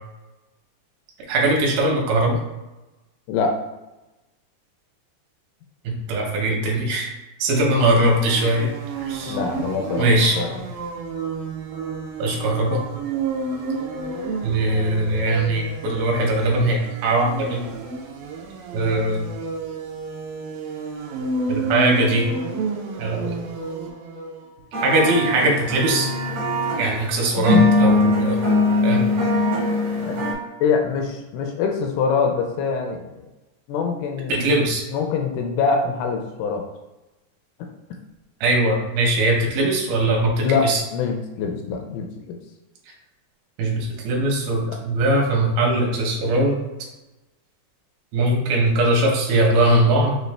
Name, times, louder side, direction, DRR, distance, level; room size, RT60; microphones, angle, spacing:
voice 1, 1.3-2.4 5.8-7.1 7.4-8.7 9.0-9.4 10.0-10.4 12.2-12.8 14.4-17.7 18.7-19.3 21.5-22.3 23.0-23.3 24.8-26.1 26.8-28.4 28.8-29.0 34.3-34.8 38.4-40.8 43.6-46.6 48.1-50.1, right 1 dB, 70° right, -1 dB, 2.5 m, -20 dB
sound 1, 7.8-24.4, right 3 dB, 90° right, 2.0 m, -31 dB
voice 2, 9.2-10.1 10.4-10.5 27.5-27.7 30.0-30.1 30.6-33.3 33.7-34.3 34.9-36.7 40.4-42.4 44.6-44.8, left 5 dB, 80° left, 2 dB, 2.3 m, -24 dB
sound 2, 24.7-30.3, left 2 dB, 55° right, 1.5 m, -21 dB
6.4 x 2.5 x 3.2 m, 1.0 s
omnidirectional pair, 4.9 m